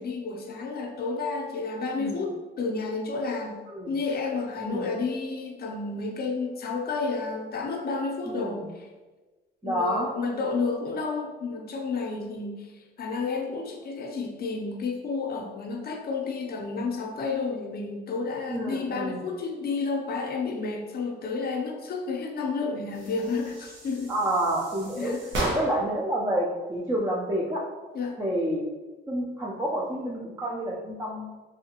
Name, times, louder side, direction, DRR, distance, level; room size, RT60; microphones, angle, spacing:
voice 1, 0.0-3.6 3.9-8.9 9.6-24.1 25.0-25.2 27.9-28.2, left 4 dB, 50° left, 2 dB, 0.6 m, -31 dB
voice 2, 4.6-4.9 8.3-8.6 9.6-10.1 18.5-19.2 24.1-25.2 25.5-27.6 28.2-28.6 29.1-31.3, right 1 dB, 15° right, -4 dB, 0.5 m, -29 dB
sound 1, 22.9-26.0, right 1 dB, 70° right, 0.9 m, -34 dB
3.3 x 2.7 x 2.8 m, 1.2 s
cardioid pair, 90°, 20 cm